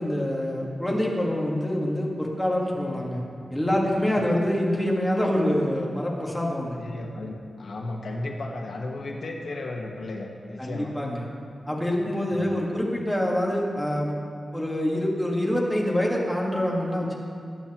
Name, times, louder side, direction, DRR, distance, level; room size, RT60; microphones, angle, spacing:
voice 1, 0.0-3.2 3.5-6.7 10.6-11.3 11.7-14.1 14.5-17.2, left 1 dB, 5° left, -3 dB, 1.6 m, -25 dB
voice 2, 4.1-4.4 6.8-10.9 12.3-12.6, left 2 dB, 60° left, 0 dB, 1.3 m, -34 dB
21.0 x 8.4 x 3.0 m, 2.3 s
wide cardioid pair, 175°, 0 cm